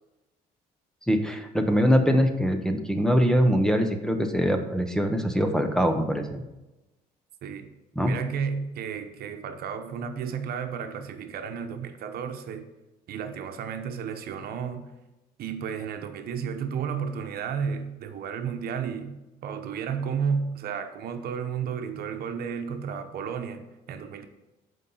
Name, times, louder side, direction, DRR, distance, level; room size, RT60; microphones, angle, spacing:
voice 1, 1.1-6.4 8.0-8.1, equal, 5° left, 6 dB, 0.9 m, -23 dB
voice 2, 7.4-7.7 8.1-12.7 13.1-14.9 15.4-24.3, right 6 dB, 65° right, 7 dB, 1.0 m, -32 dB
8.1 x 5.4 x 5.6 m, 1.0 s
cardioid pair, 110°, 17 cm